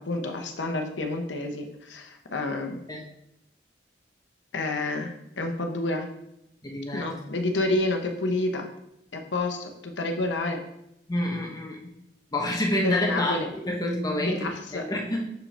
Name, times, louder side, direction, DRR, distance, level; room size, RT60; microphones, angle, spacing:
voice 1, 0.1-2.8 4.5-6.1 6.9-8.7 9.1-10.6 12.8-13.5 14.2-14.8, left 2 dB, 85° left, 4 dB, 0.9 m, -29 dB
voice 2, 6.6-7.1 11.1-11.8 12.3-15.3, left 1 dB, 20° left, 0 dB, 0.8 m, -28 dB
6.4 x 5.0 x 3.3 m, 0.82 s
head